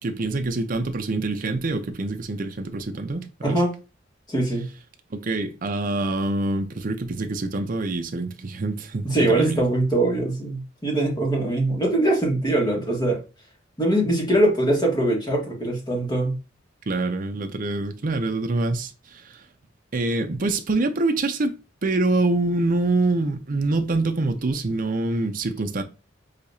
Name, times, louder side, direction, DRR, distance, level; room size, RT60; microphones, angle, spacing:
voice 1, 0.0-3.6 5.1-9.6 16.9-19.5 19.9-21.5 21.8-25.8, right 2 dB, 45° right, 0.5 m, -25 dB
voice 2, 4.3-4.6 9.0-13.2 13.8-16.3, right 1 dB, 20° left, 1.5 m, -22 dB
6.5 x 2.8 x 2.7 m
head